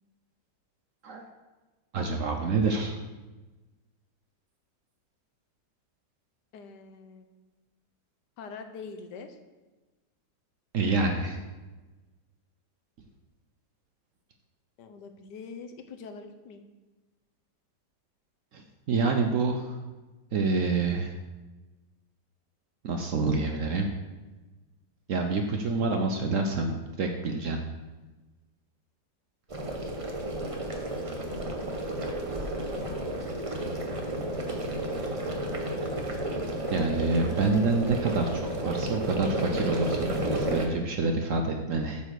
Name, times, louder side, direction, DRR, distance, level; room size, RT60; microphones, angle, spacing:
voice 1, 1.9-2.9 10.7-11.4 18.5-19.8 20.3-21.1 22.8-23.9 25.1-27.6 36.7-42.0, right 3 dB, 60° right, 4 dB, 0.9 m, -27 dB
voice 2, 6.5-7.2 8.4-9.4 14.8-16.6 32.7-33.4, left 5 dB, 75° left, 7 dB, 1.4 m, -44 dB
sound 1, 29.5-40.7, right 1 dB, 30° right, 0.6 m, -32 dB
8.2 x 4.3 x 6.5 m, 1.2 s
omnidirectional pair, 1.9 m